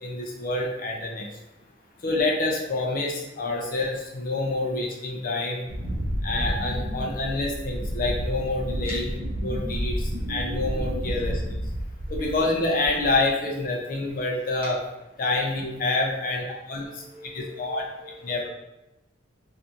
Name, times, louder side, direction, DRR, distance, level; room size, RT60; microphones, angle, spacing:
voice 1, 0.0-1.3 2.0-5.7 6.2-9.1 9.4-11.5 12.1-14.8 15.2-16.8 17.3-17.8 18.2-18.5, left 2 dB, 45° left, 0 dB, 0.4 m, -27 dB
Wind, 5.7-12.5 12.8-13.3, equal, 65° right, 0.4 m, -30 dB
voice 2, 16.8-18.5, right 1 dB, 30° right, -7 dB, 1.0 m, -44 dB
2.5 x 2.4 x 2.7 m, 0.94 s
head